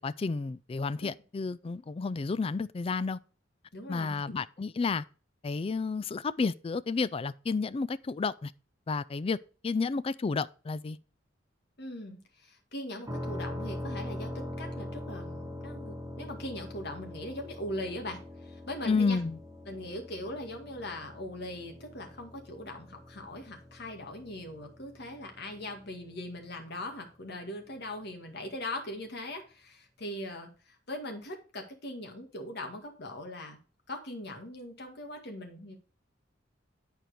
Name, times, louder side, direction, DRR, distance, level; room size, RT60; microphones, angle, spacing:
voice 1, 0.0-3.2 3.9-5.0 5.4-8.5 8.9-9.4 9.6-11.0 18.9-19.4, left 4 dB, 30° left, 0.3 m, -31 dB
voice 2, 3.7-4.3 11.8-19.2 19.7-33.6 33.9-35.8, left 1 dB, 60° left, 1.9 m, -40 dB
sound 1, 13.1-26.8, left 1 dB, 15° right, 1.1 m, -42 dB
9.2 x 4.5 x 4.9 m
head